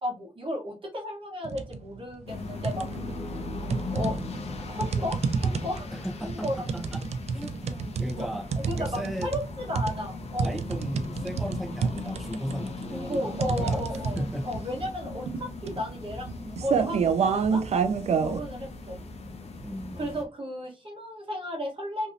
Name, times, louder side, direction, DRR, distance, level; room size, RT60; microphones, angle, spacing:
voice 1, 0.0-2.9 3.9-5.9 6.2-6.7 8.1-8.3 8.5-10.6 12.9-17.6 18.1-19.0 20.0-22.1, left 1 dB, 45° right, 0 dB, 1.0 m, -34 dB
sound 1, 1.4-1.8 2.2-3.1 3.7-18.4, right 5 dB, 60° right, 0.4 m, -29 dB
sound 2, 2.3-20.2, left 3 dB, 60° left, 0.6 m, -39 dB
voice 2, 4.5-4.8 5.9-8.4 8.7-9.3 10.4-13.8 14.1-14.5 19.6-20.1, equal, ahead, -1 dB, 0.8 m, -36 dB
2.9 x 2.7 x 2.5 m, 0.31 s
wide cardioid pair, 125°, 12 cm